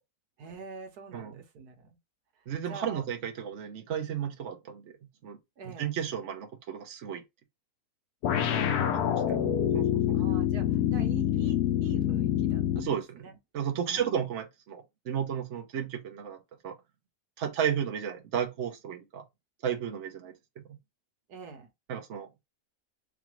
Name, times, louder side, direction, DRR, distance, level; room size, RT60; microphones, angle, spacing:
voice 1, 0.4-2.0 2.7-3.0 5.6-5.9 8.4-9.6 10.1-13.4 13.9-14.2 21.3-21.7, right 5 dB, 85° right, 1.5 m, -45 dB
voice 2, 2.5-4.9 5.2-5.4 5.6-7.2 8.9-9.4 9.7-10.2 12.8-13.2 13.5-16.4 16.6-16.7 17.4-19.2 19.6-20.6 21.9-22.3, right 8 dB, 55° right, 1.1 m, -33 dB
sound 1, 8.2-13.0, left 10 dB, 75° left, 1.2 m, -26 dB
4.9 x 2.4 x 3.1 m
omnidirectional pair, 1.6 m